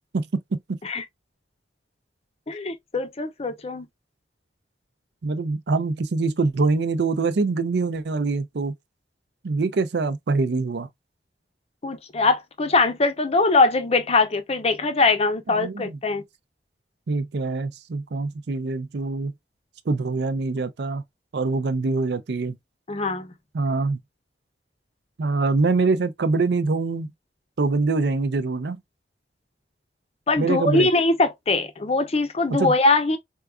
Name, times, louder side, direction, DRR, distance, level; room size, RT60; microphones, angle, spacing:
voice 1, 0.1-0.8 5.2-8.7 9.4-10.9 15.5-16.0 17.1-19.3 19.9-21.0 21.3-22.6 23.5-24.0 25.2-27.1 27.6-28.8 30.4-30.9 32.6-32.7, right 3 dB, 65° right, 0.5 m, -24 dB
voice 2, 2.5-3.9 11.8-16.2 22.9-23.3 30.3-33.2, left 3 dB, 35° left, 0.6 m, -22 dB
4.5 x 2.3 x 2.3 m
head